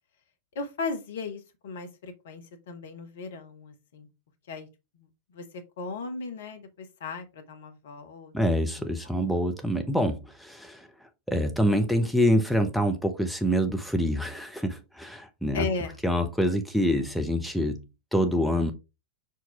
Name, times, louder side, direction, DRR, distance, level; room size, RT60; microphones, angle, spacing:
voice 1, 0.5-4.1 4.5-4.7 4.9-9.1 15.5-16.0, left 4 dB, 60° left, 1.2 m, -37 dB
voice 2, 8.3-10.9 11.3-15.7 16.0-17.8 18.1-18.7, equal, ahead, 1.0 m, -26 dB
5.9 x 4.7 x 3.5 m
figure-of-eight pair, 90°, 0 cm